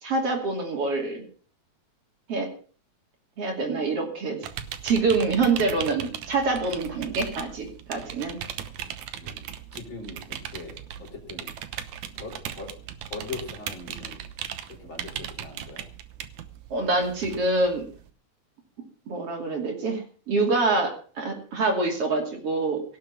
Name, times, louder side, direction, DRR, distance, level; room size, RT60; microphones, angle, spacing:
voice 1, 0.0-1.3 2.3-2.5 3.4-4.4 4.8-8.4 16.7-17.9 19.1-22.8, right 3 dB, 55° right, 2 dB, 3.7 m, -26 dB
sound 1, 4.4-18.1, right 10 dB, 80° right, 2.5 m, -38 dB
voice 2, 9.2-11.5 12.2-14.2 14.7-15.9, left 3 dB, 40° left, 1 dB, 4.9 m, -41 dB
17.5 x 7.5 x 7.2 m, 0.42 s
omnidirectional pair, 3.3 m